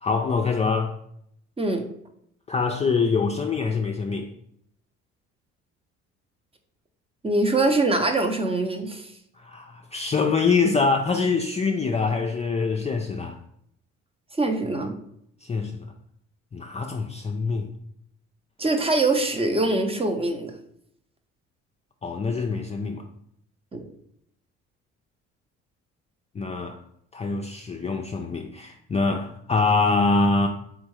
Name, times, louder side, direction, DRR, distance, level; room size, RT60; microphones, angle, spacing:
voice 1, 0.0-0.9 2.5-4.3 9.4-13.4 15.4-15.9 16.5-17.7 22.0-23.1 26.3-26.8 27.1-30.5, left 4 dB, 20° left, 2 dB, 0.3 m, -24 dB
voice 2, 7.2-9.1 14.4-15.0 18.6-20.5 23.7-23.8, right 2 dB, 15° right, 5 dB, 0.7 m, -23 dB
3.7 x 3.4 x 3.1 m, 0.72 s
hypercardioid pair, 60°, 34 cm